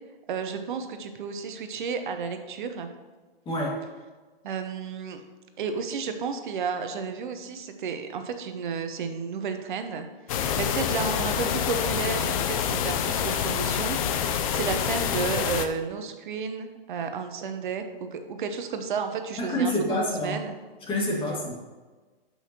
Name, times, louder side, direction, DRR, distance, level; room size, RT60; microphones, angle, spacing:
voice 1, 0.3-2.9 4.4-5.2 5.6-10.1 10.5-20.5, right 5 dB, 55° right, 7 dB, 1.0 m, -32 dB
voice 2, 3.5-3.8 19.4-20.4 20.9-21.5, equal, 15° left, -3 dB, 2.2 m, -27 dB
sound 1, 10.3-15.7, left 8 dB, 35° left, 0.6 m, -27 dB
12.0 x 5.7 x 3.0 m, 1.3 s
figure-of-eight pair, 125°, 30 cm